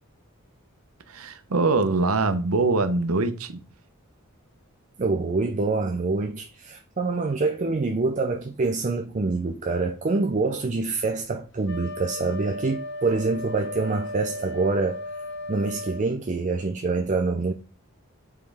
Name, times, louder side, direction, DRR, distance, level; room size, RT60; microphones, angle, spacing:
voice 1, 1.1-3.6, right 3 dB, 85° right, 0.8 m, -23 dB
voice 2, 5.0-15.0 15.5-17.5, right 3 dB, 35° right, 0.5 m, -26 dB
Wind instrument woodwind instrument, 11.6-16.1, left 1 dB, 60° left, 1.1 m, -35 dB
7.5 x 4.6 x 3.4 m
head